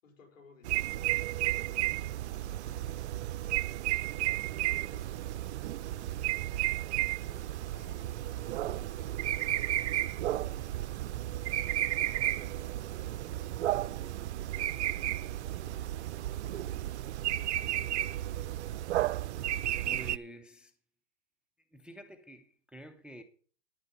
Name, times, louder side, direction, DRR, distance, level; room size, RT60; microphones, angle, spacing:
voice 1, 0.0-2.0 2.6-3.6 3.9-5.3 5.8-10.9 11.4-16.6 17.3-18.7, left 5 dB, 75° left, 5.0 m, -60 dB
sound 1, 0.6-20.2, right 14 dB, 60° right, 0.5 m, -33 dB
sound 2, 5.1-7.1 10.6-12.7 16.1-18.2, right 15 dB, 20° right, 1.0 m, -50 dB
voice 2, 19.8-20.7 21.6-23.2, right 1 dB, 5° right, 0.4 m, -49 dB
10.5 x 8.7 x 5.4 m
hypercardioid pair, 115°, 39 cm